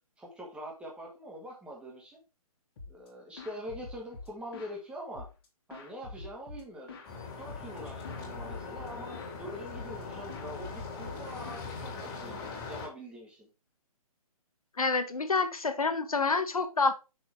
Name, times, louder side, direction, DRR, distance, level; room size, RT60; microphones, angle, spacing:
voice 1, 0.2-2.2 2.9-5.3 5.7-7.0 7.4-13.5, equal, 5° right, -1 dB, 1.7 m, -44 dB
sound 1, 2.8-3.1 3.4-4.8 5.1-7.1 7.5-7.8 8.0-9.4 9.7-10.0 10.3-12.4, left 3 dB, 40° left, 2.2 m, -46 dB
sound 2, 7.0-12.9, left 4 dB, 20° left, 2.6 m, -41 dB
voice 2, 14.8-16.9, left 4 dB, 70° left, 9 dB, 1.2 m, -28 dB
6.4 x 5.8 x 3.5 m, 0.29 s
figure-of-eight pair, 135°, 19 cm